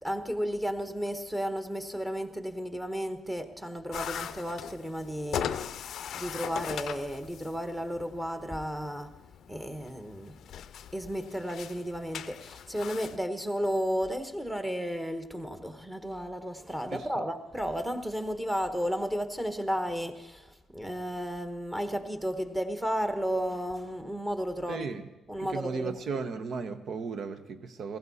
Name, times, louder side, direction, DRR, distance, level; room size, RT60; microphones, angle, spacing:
voice 1, 0.0-5.6 6.1-9.1 9.5-10.4 10.9-24.9 25.3-26.0, equal, 10° right, 7 dB, 1.2 m, -33 dB
sound 1, 3.9-13.2, left 9 dB, 70° left, 0.5 m, -40 dB
voice 2, 16.9-17.2 24.7-25.1 25.4-28.0, right 5 dB, 60° right, 9 dB, 1.0 m, -35 dB
16.0 x 15.0 x 4.2 m, 0.98 s
cardioid pair, 90°, 0 cm